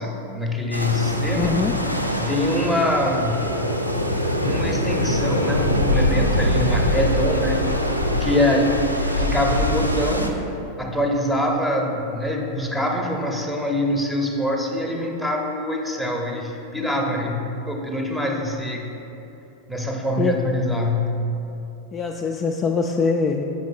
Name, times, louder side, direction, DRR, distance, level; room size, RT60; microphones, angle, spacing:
voice 1, 0.0-1.6 2.1-3.5 4.4-7.6 8.0-8.7 9.0-10.4 10.8-18.9 19.7-21.3, left 1 dB, 5° right, 1 dB, 0.8 m, -24 dB
sound 1, 0.7-10.3, left 1 dB, 90° right, 0.5 m, -23 dB
voice 2, 1.3-1.7 20.2-20.4 21.9-23.4, left 5 dB, 25° left, 2 dB, 0.3 m, -23 dB
7.2 x 5.2 x 3.8 m, 2.9 s
figure-of-eight pair, 90°, 0 cm